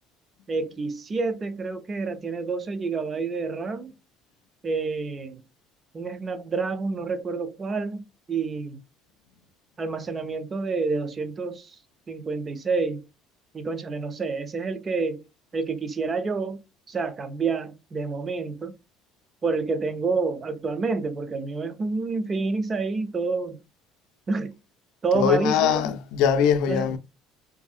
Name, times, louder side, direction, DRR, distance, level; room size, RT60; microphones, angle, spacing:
voice 1, 0.5-3.9 4.6-5.4 5.9-8.8 9.8-11.8 12.1-13.0 13.5-15.2 15.5-16.6 16.9-18.7 19.4-23.6 24.3-24.5 25.0-25.9 26.7-27.0, right 4 dB, 20° right, 0.4 m, -28 dB
voice 2, 25.1-27.0, left 8 dB, 70° left, 0.4 m, -22 dB
2.7 x 2.6 x 2.4 m
cardioid pair, 160°, 0 cm